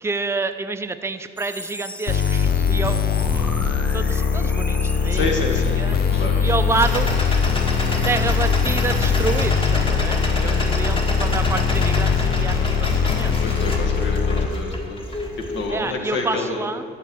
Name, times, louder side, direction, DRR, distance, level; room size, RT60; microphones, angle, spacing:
voice 1, 0.0-3.6 3.9-5.5 5.8-7.1 8.0-13.6 15.7-16.8, right 3 dB, 15° right, 9 dB, 0.4 m, -28 dB
sound 1, 1.4-9.5, equal, 5° left, 0.8 m, -38 dB
sound 2, 2.1-14.5, left 6 dB, 50° left, 0.5 m, -21 dB
voice 2, 5.1-6.4 10.4-10.6 13.4-15.0 15.5-16.6, left 2 dB, 70° left, 1 dB, 1.6 m, -28 dB
sound 3, 6.8-15.8, left 1 dB, 25° left, 1.5 m, -28 dB
11.5 x 4.5 x 7.7 m, 2.3 s
cardioid pair, 90°, 20 cm